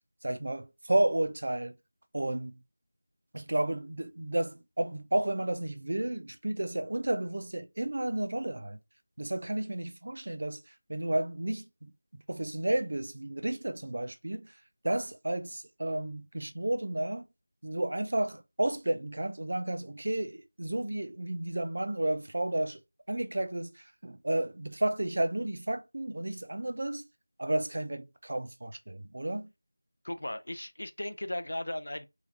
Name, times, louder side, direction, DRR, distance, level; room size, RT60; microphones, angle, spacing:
voice 1, 0.2-1.7 2.1-2.5 3.3-8.8 9.2-10.6 10.9-14.5 14.8-17.3 17.6-22.8 23.1-27.0 27.4-29.5, right 1 dB, 55° right, 0.5 m, -32 dB
voice 2, 30.0-32.1, left 1 dB, 75° left, 0.5 m, -36 dB
3.8 x 2.3 x 2.7 m
figure-of-eight pair, 175°, 0 cm